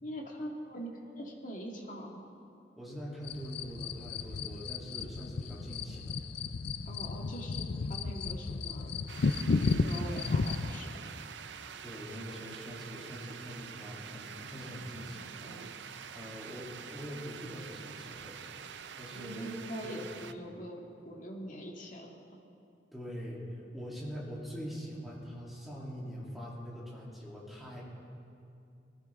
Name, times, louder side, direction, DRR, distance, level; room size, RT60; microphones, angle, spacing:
voice 1, 0.0-2.2 6.9-8.9 9.6-11.1 19.1-22.1, equal, 45° left, 0 dB, 2.0 m, -43 dB
voice 2, 2.8-6.2 11.8-15.6 16.1-18.4 18.9-19.5 19.8-20.0 22.9-27.8, equal, ahead, -6 dB, 3.1 m, -43 dB
sound 1, 3.2-10.8, left 4 dB, 65° left, 0.5 m, -33 dB
sound 2, 9.1-20.3, right 7 dB, 90° right, 0.6 m, -46 dB
20.5 x 14.0 x 3.7 m, 2.6 s
head